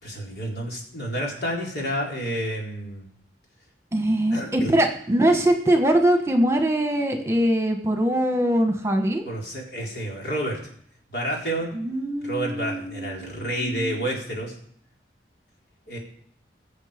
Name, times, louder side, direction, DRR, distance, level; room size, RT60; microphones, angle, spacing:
voice 1, 0.0-3.0 4.3-4.7 9.3-10.6 11.1-11.8 12.2-14.6 15.9-16.0, right 1 dB, 65° left, -2 dB, 4.3 m, -29 dB
voice 2, 3.9-9.2 11.7-14.0, right 1 dB, 15° right, 4 dB, 1.3 m, -22 dB
21.0 x 7.4 x 5.2 m, 0.64 s
head